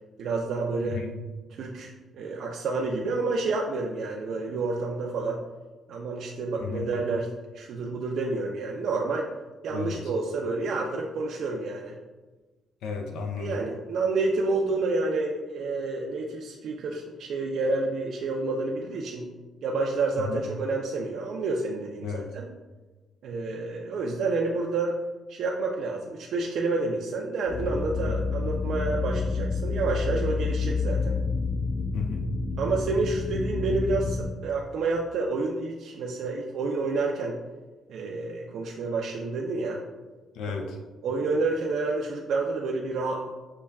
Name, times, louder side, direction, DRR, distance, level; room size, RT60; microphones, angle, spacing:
voice 1, 0.2-1.0 1.5-5.4 5.9-7.3 7.5-9.3 9.6-12.0 13.4-19.3 19.6-22.5 23.2-25.0 25.3-31.2 32.6-37.4 37.9-39.8 41.0-43.3, right 3 dB, 70° right, -1 dB, 0.4 m, -29 dB
voice 2, 0.8-1.1 6.6-6.9 9.7-10.0 12.8-13.6 20.3-20.4 22.0-22.2 28.0-28.1 31.9-32.3 40.3-40.8, left 6 dB, 85° left, 3 dB, 0.4 m, -33 dB
sound 1, 27.5-34.3, left 4 dB, 50° left, 1.1 m, -29 dB
6.4 x 2.2 x 2.2 m, 1.2 s
cardioid pair, 90°, 0 cm